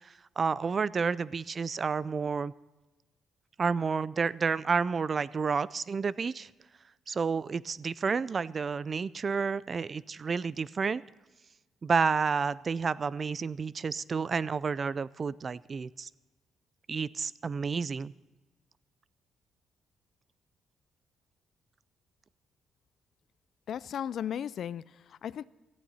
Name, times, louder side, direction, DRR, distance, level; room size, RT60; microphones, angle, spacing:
voice 1, 0.4-2.5 3.6-6.5 7.1-11.0 11.8-16.1 16.9-18.1, right 5 dB, 40° right, 20 dB, 0.4 m, -30 dB
voice 2, 23.7-25.4, left 9 dB, 65° left, 19 dB, 0.4 m, -36 dB
18.0 x 14.5 x 4.2 m, 1.1 s
cardioid pair, 90°, 0 cm